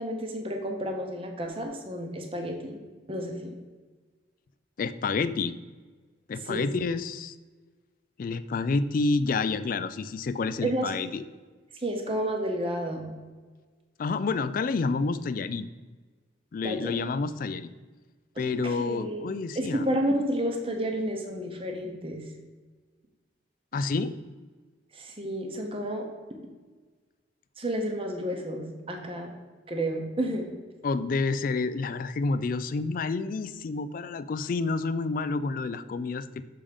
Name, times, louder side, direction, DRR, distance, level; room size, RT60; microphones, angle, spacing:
voice 1, 0.0-2.8 3.1-3.6 6.5-6.7 10.6-10.9 11.7-13.1 16.6-16.9 18.4-18.5 18.7-22.2 24.9-26.1 27.6-29.3 29.7-30.5, right 1 dB, 30° right, 2 dB, 0.9 m, -31 dB
voice 2, 4.8-5.6 6.3-7.3 8.2-11.2 14.0-15.7 16.5-17.7 18.4-19.9 23.7-24.2 30.8-36.4, left 4 dB, 45° left, 13 dB, 0.3 m, -29 dB
6.7 x 3.6 x 5.1 m, 1.4 s
head